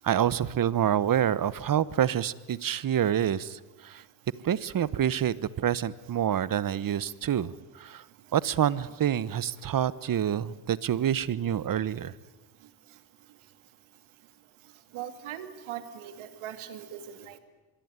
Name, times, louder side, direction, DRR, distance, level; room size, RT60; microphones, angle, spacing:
voice 1, 0.0-4.0 4.4-8.0 8.3-12.1, right 10 dB, 45° right, 18 dB, 1.1 m, -27 dB
voice 2, 14.9-17.4, right 10 dB, 80° right, 10 dB, 2.6 m, -40 dB
25.5 x 22.5 x 9.7 m, 1.2 s
cardioid pair, 95°, 48 cm